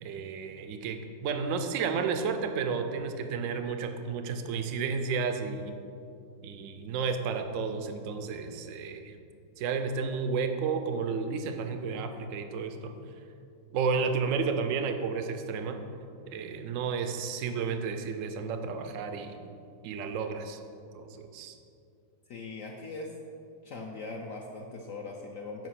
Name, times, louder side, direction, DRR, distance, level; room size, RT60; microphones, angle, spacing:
voice 1, 0.0-5.7 6.4-9.2 9.6-12.9 13.7-15.8 16.3-19.4 19.8-20.6 20.9-21.6, right 5 dB, 80° right, 6 dB, 0.7 m, -32 dB
voice 2, 22.3-23.1 23.6-25.7, left 3 dB, 70° left, 1 dB, 0.8 m, -40 dB
7.7 x 5.0 x 5.8 m, 2.6 s
omnidirectional pair, 2.0 m